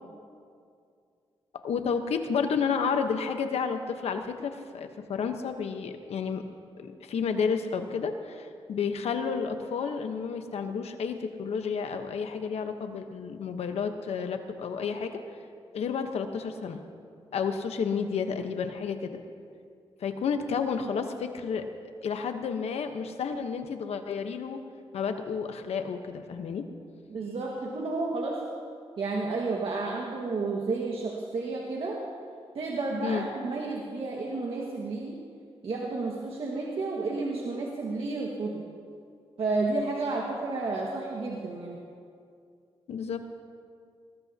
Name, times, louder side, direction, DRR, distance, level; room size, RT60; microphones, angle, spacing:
voice 1, 1.6-6.4 6.8-15.1 15.7-16.8 17.3-19.2 20.0-21.6 22.0-24.6 24.9-26.7 33.0-33.2 42.9-43.3, left 6 dB, 80° left, 6 dB, 1.1 m, -31 dB
voice 2, 27.1-28.4 29.0-32.0 32.5-35.2 35.6-38.6 39.4-41.8, right 3 dB, 65° right, -3 dB, 1.8 m, -31 dB
20.0 x 20.0 x 2.9 m, 2.3 s
cardioid pair, 80°, 10 cm